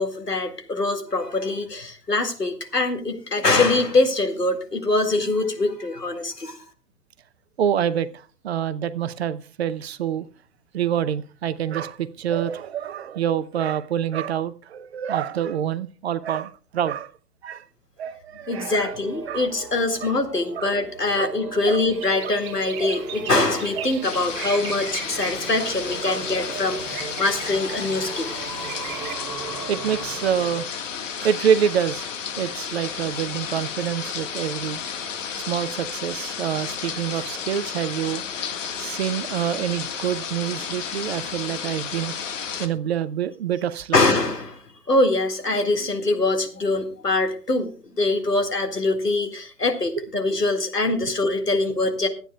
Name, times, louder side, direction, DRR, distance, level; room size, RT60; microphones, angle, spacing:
voice 1, 0.0-6.6 18.5-28.3 43.9-44.6 44.9-47.7 48.0-52.1, left 2 dB, 90° left, 6 dB, 2.2 m, -23 dB
voice 2, 7.6-10.3 10.7-17.1 17.4-17.6 18.0-18.9 19.3-19.5 20.0-20.1 20.6-20.7 21.1-21.3 21.7-21.8 22.2-22.3 22.8-23.0 23.3-23.9 24.4-24.5 26.0-26.2 29.4-30.7 31.2-32.1 32.4-34.8 35.4-38.2 38.8-42.2 42.6-44.0 50.0-50.1, right 9 dB, 45° right, 14 dB, 0.7 m, -26 dB
sound 1, 18.5-30.7, right 4 dB, 75° right, 1.5 m, -38 dB
sound 2, 21.8-29.1, right 8 dB, 25° right, 2.3 m, -38 dB
sound 3, 24.0-42.7, left 7 dB, 50° left, 1.7 m, -32 dB
24.0 x 9.2 x 2.3 m, 0.36 s
figure-of-eight pair, 120°, 47 cm